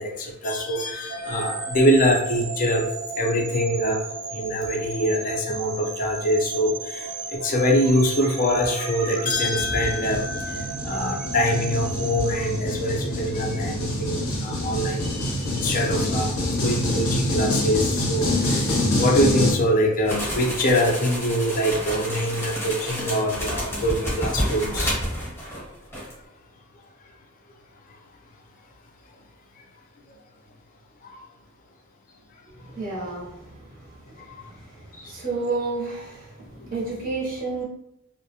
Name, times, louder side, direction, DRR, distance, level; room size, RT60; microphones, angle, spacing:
voice 1, 0.0-2.9 3.2-4.0 4.3-24.9 31.0-31.2 34.3-34.4 35.0-35.1 36.6-36.7, equal, 40° left, 1 dB, 0.4 m, -24 dB
sound 1, 1.1-13.2, right 4 dB, 90° right, 0.7 m, -35 dB
sound 2, 9.2-19.5, left 1 dB, 90° left, 0.7 m, -26 dB
sound 3, 20.1-25.7 25.9-26.1, equal, 10° left, 0.8 m, -30 dB
voice 2, 32.7-33.3 35.0-36.3 36.7-37.6, right 3 dB, 40° right, -5 dB, 0.6 m, -29 dB
2.3 x 2.0 x 2.7 m, 0.83 s
head